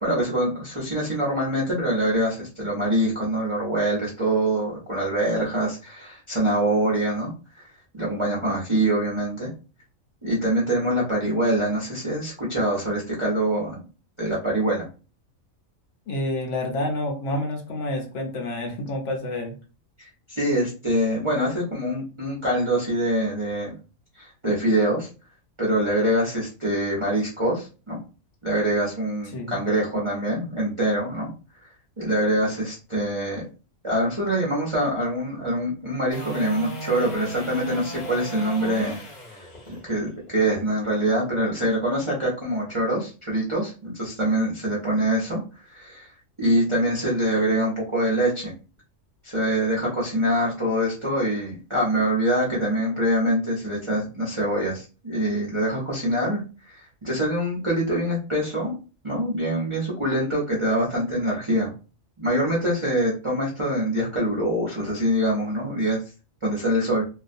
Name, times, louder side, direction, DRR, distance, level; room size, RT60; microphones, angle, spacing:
voice 1, 0.0-7.3 7.9-9.5 10.2-13.8 14.2-14.9 20.3-23.7 24.2-25.1 25.6-28.0 28.4-31.3 32.0-33.4 33.8-39.0 39.3-45.4 45.7-46.1 46.4-48.5 49.2-56.4 56.7-58.8 59.0-61.7 62.2-66.0 66.4-67.0, right 1 dB, 35° right, -6 dB, 0.5 m, -24 dB
voice 2, 16.1-19.5 29.3-29.6, left 1 dB, 70° left, 3 dB, 0.8 m, -28 dB
sound 1, 36.1-42.2 48.8-48.9, equal, 40° left, 0.7 m, -37 dB
2.4 x 2.1 x 2.5 m, 0.34 s
omnidirectional pair, 1.4 m